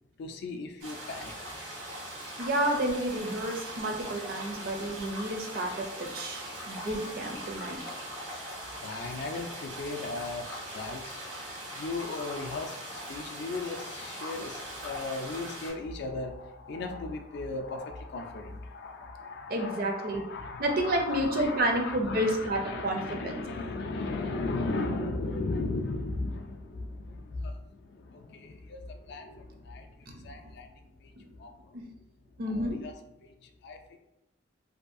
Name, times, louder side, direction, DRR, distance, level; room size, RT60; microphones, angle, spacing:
voice 1, 0.2-1.6 6.6-6.7 8.4-8.5 8.7-11.2 11.7-30.7 31.0-31.7 32.5-32.9 33.2-33.8, left 3 dB, 60° left, 5 dB, 0.3 m, -37 dB
sound 1, 0.8-15.7, equal, 80° right, 1.1 m, -41 dB
voice 2, 2.4-7.8 19.5-20.2 20.6-23.4 30.1-30.4 31.7-31.8 32.4-32.8, right 1 dB, 50° right, 3 dB, 0.5 m, -30 dB
2.7 x 2.3 x 2.5 m, 0.93 s
head